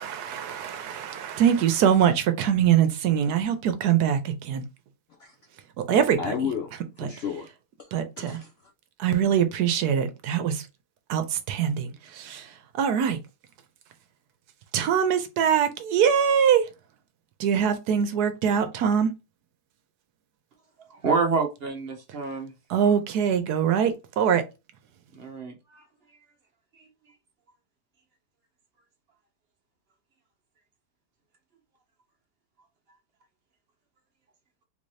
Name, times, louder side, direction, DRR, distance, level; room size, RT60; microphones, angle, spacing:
voice 1, 0.0-4.6 5.9-6.3 7.9-8.4 9.0-10.6 11.1-12.5 12.7-13.2 14.7-16.6 17.4-19.1 22.7-24.4, right 8 dB, 75° right, 1.1 m, -23 dB
voice 2, 5.9-6.7 7.0-7.5 7.8-7.9 8.2-8.7, left 7 dB, 70° left, 0.6 m, -33 dB
voice 3, 20.8-22.5 25.1-26.2 26.7-27.1, right 4 dB, 50° right, 0.8 m, -29 dB
3.6 x 2.7 x 3.2 m
omnidirectional pair, 1.7 m